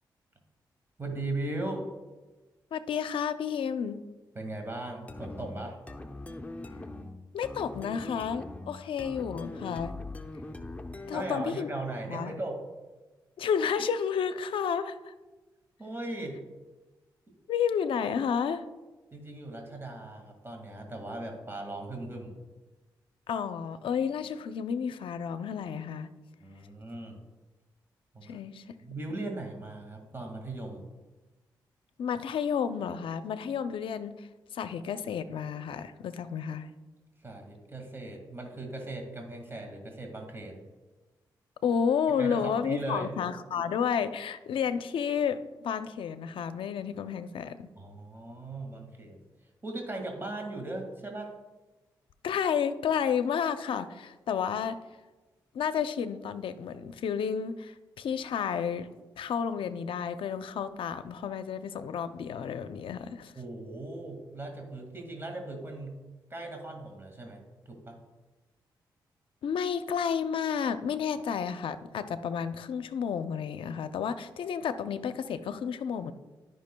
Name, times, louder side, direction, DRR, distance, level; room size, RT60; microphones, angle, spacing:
voice 1, 1.0-1.9 4.3-5.8 11.1-12.6 15.8-16.4 19.1-22.4 26.4-27.2 28.1-28.3 28.8-30.9 37.2-40.6 42.2-43.1 47.8-49.2 49.6-51.3 63.3-66.0 66.3-68.0, right 2 dB, 25° right, 2 dB, 1.9 m, -38 dB
voice 2, 2.7-4.0 7.3-9.9 11.1-11.7 12.1-12.3 13.4-15.1 17.5-18.6 23.3-26.1 28.2-28.6 32.0-36.7 41.6-47.7 52.2-54.8 55.5-58.9 59.2-63.3 69.4-76.1, left 7 dB, 75° left, 11 dB, 0.5 m, -31 dB
sound 1, 5.1-11.6, left 2 dB, 15° left, 0.7 m, -42 dB
13.5 x 5.6 x 2.2 m, 1.2 s
supercardioid pair, 50°, 9 cm